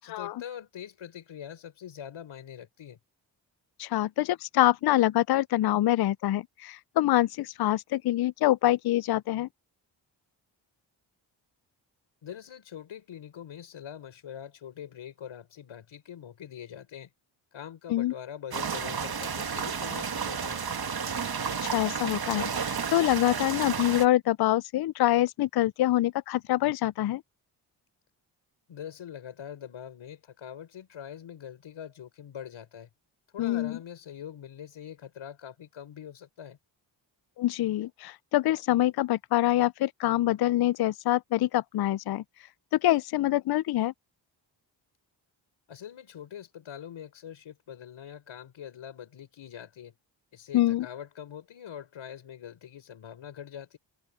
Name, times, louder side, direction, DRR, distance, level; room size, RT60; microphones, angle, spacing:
voice 1, 0.0-3.0 12.2-17.1 17.5-20.6 28.7-32.9 33.3-36.6 45.7-49.9 50.3-53.8, left 9 dB, 80° left, 5.1 m, -43 dB
voice 2, 3.8-9.5 17.9-18.1 21.6-27.2 33.4-33.8 37.4-42.2 42.7-43.9 50.5-50.9, left 15 dB, 55° left, 0.5 m, -25 dB
sound 1, 18.5-24.1, right 6 dB, 50° right, 2.0 m, -32 dB
open air
cardioid pair, 55°, 47 cm